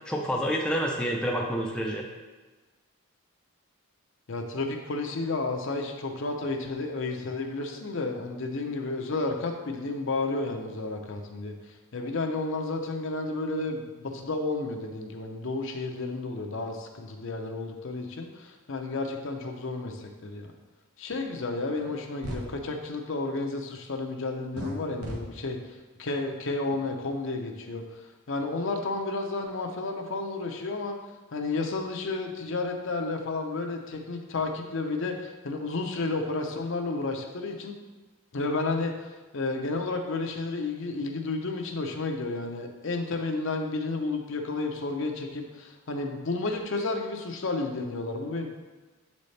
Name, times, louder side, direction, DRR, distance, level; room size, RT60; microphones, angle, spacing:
voice 1, 0.1-2.0, equal, 5° left, -2 dB, 0.4 m, -28 dB
voice 2, 4.3-20.5 21.0-28.0 28.3-31.0 31.3-37.7 38.3-48.5, left 3 dB, 55° left, 3 dB, 0.6 m, -32 dB
sound 1, 21.8-21.9 22.2-22.4 24.5-24.7 25.0-25.2, right 1 dB, 85° right, 1.1 m, -35 dB
7.3 x 4.1 x 3.2 m, 1.2 s
head